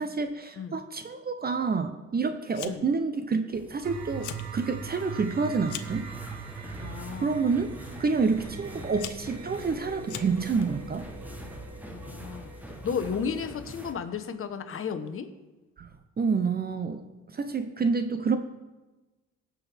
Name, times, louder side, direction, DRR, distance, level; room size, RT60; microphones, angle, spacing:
voice 1, 0.0-6.0 6.6-6.9 7.2-7.7 8.0-11.0 15.8-15.9 16.2-17.0 17.3-18.4, right 4 dB, 30° right, 8 dB, 0.7 m, -28 dB
Fire, 2.5-3.0 3.3-3.8 4.1-4.5 4.9-6.0 6.8-7.2 8.0-8.1 8.7-10.6, left 11 dB, 80° left, 0.7 m, -41 dB
sound 1, 3.5-13.9, equal, 5° right, 1.2 m, -44 dB
sound 2, 3.8-13.4, right 6 dB, 60° right, 1.1 m, -42 dB
voice 2, 6.8-7.4 8.8-8.9 11.9-12.5 12.8-15.3, left 6 dB, 45° left, 9 dB, 1.0 m, -33 dB
17.0 x 6.1 x 3.4 m, 1.1 s
cardioid pair, 90°, 30 cm